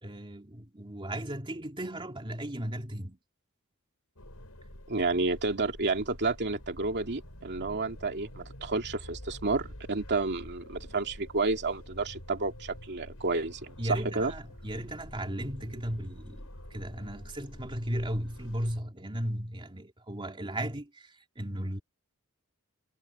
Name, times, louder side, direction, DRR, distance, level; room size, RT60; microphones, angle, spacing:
voice 1, 0.0-3.2 13.8-21.8, right 1 dB, 25° right, 3.0 m, -36 dB
sound 1, 4.2-18.8, equal, 70° left, 7.7 m, -47 dB
voice 2, 4.9-14.3, right 3 dB, 50° right, 2.6 m, -30 dB
head